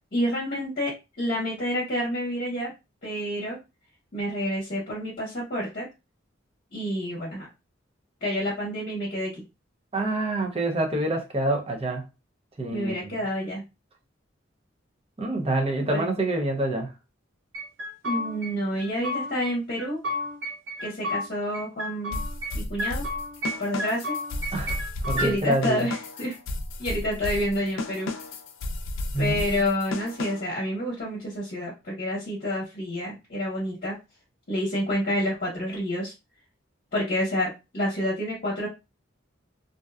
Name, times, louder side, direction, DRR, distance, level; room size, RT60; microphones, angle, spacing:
voice 1, 0.1-2.7 3.0-3.6 4.1-5.9 6.7-7.5 8.2-9.4 12.7-13.6 15.9-16.0 18.0-20.0 20.8-22.2 22.5-23.0 23.6-24.2 25.1-26.4 26.8-28.1 29.2-33.9 34.5-36.1 36.9-38.7, equal, 50° left, 0.9 m, -29 dB
voice 2, 9.9-12.0 12.6-13.2 15.2-16.9 24.5-24.8 25.1-25.9 29.1-29.3, right 2 dB, 30° right, 0.6 m, -26 dB
sound 1, 17.5-18.5 18.8-19.5 19.8-21.2 21.5-22.5 22.8-23.5 23.8-25.3, left 1 dB, 65° right, 0.8 m, -31 dB
sound 2, 22.1-30.6, left 2 dB, 85° left, 0.4 m, -33 dB
2.6 x 2.2 x 2.3 m
head